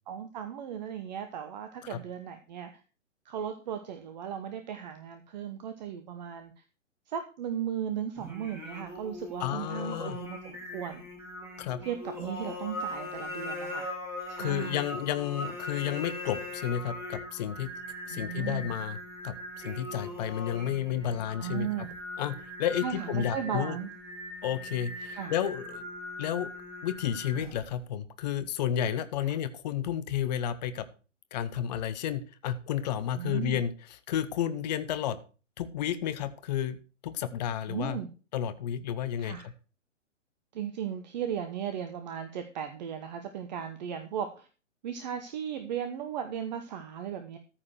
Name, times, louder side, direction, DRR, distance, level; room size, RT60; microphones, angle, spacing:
voice 1, 0.1-2.8 3.2-6.6 7.1-11.0 11.8-13.9 14.3-14.8 18.1-18.7 21.4-21.9 22.7-23.9 25.1-25.3 29.2-29.4 33.1-33.6 37.7-38.1 39.2-39.5 40.5-44.5 44.8-47.4, right 8 dB, 35° right, 8 dB, 1.1 m, -36 dB
Singing, 8.2-27.8, left 1 dB, 5° right, 2.7 m, -40 dB
voice 2, 9.4-10.2 11.6-11.8 14.4-17.7 18.1-19.0 19.2-21.7 22.2-23.7 24.4-25.9 26.2-26.5 26.8-30.9 31.3-33.7 34.1-35.2 35.6-36.8 37.0-38.0 38.3-39.4, left 10 dB, 35° left, 12 dB, 0.9 m, -31 dB
14.0 x 4.9 x 6.3 m, 0.35 s
figure-of-eight pair, 120°, 37 cm